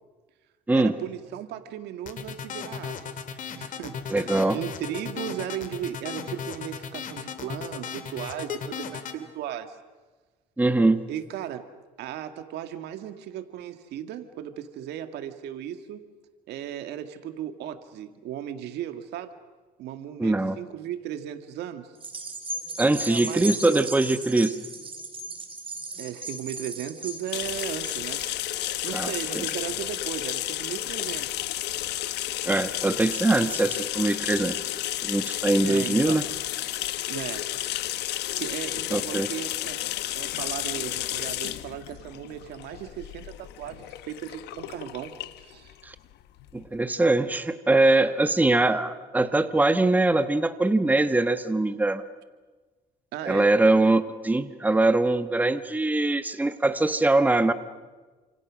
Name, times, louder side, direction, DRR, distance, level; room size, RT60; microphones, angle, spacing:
voice 1, 0.7-3.2 3.6-9.8 11.1-11.7 12.0-16.0 16.5-19.3 19.8-21.9 23.1-23.8 26.0-28.2 28.8-31.3 35.6-36.2 37.1-37.5 38.4-39.8 40.1-45.1 45.4-45.7 53.1-53.5, right 10 dB, 80° right, 8 dB, 1.9 m, -36 dB
sound 1, 2.1-9.2, left 7 dB, 50° left, 2.6 m, -35 dB
voice 2, 4.1-4.6 10.6-11.0 20.2-20.6 22.8-24.5 28.9-29.1 32.4-34.6 35.0-36.2 38.9-39.3 45.8-45.9 46.5-52.0 53.2-57.5, right 2 dB, 10° right, 10 dB, 1.3 m, -22 dB
sound 2, 22.0-30.6 31.1-31.2, right 2 dB, 30° right, 3.9 m, -37 dB
sound 3, 27.3-46.7, left 15 dB, 80° left, 1.1 m, -32 dB
29.0 x 27.0 x 6.3 m, 1.3 s
cardioid pair, 110°, 17 cm